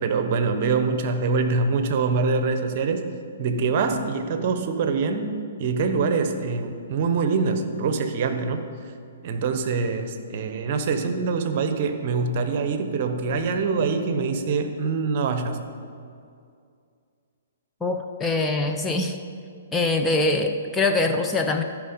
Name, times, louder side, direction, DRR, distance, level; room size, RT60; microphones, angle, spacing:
voice 1, 0.0-3.1 3.4-5.3 5.6-8.6 9.2-15.6, right 4 dB, 45° right, 8 dB, 0.9 m, -24 dB
voice 2, 17.8-19.2 19.7-21.6, left 3 dB, 10° left, 3 dB, 0.5 m, -23 dB
14.0 x 5.2 x 5.2 m, 2.3 s
figure-of-eight pair, 125°, 0 cm